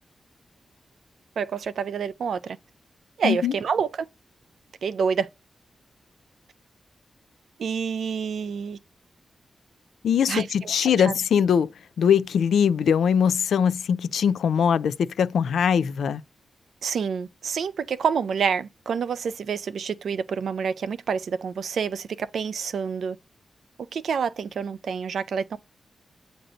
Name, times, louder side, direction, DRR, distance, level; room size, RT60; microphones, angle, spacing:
voice 1, 1.4-2.6 3.2-3.9 4.8-5.3 7.6-8.8 10.3-11.1 16.8-23.2 23.9-25.6, right 6 dB, 80° right, 0.5 m, -28 dB
voice 2, 3.2-3.5 10.0-11.7 12.0-16.2, left 7 dB, 90° left, 0.3 m, -21 dB
7.7 x 2.6 x 4.9 m
cardioid pair, 50°, 0 cm